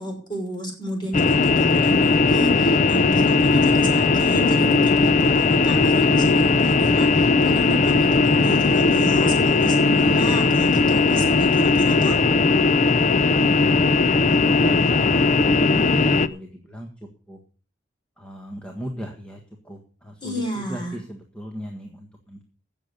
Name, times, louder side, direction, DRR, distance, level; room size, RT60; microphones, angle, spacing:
voice 1, 0.0-12.1 20.2-21.0, equal, 25° left, 1 dB, 6.0 m, -31 dB
sound 1, 1.1-16.3, left 3 dB, 40° left, 0.6 m, -18 dB
voice 2, 13.1-17.4 18.2-22.4, equal, 5° left, 1 dB, 1.6 m, -37 dB
16.0 x 7.2 x 6.7 m, 0.40 s
head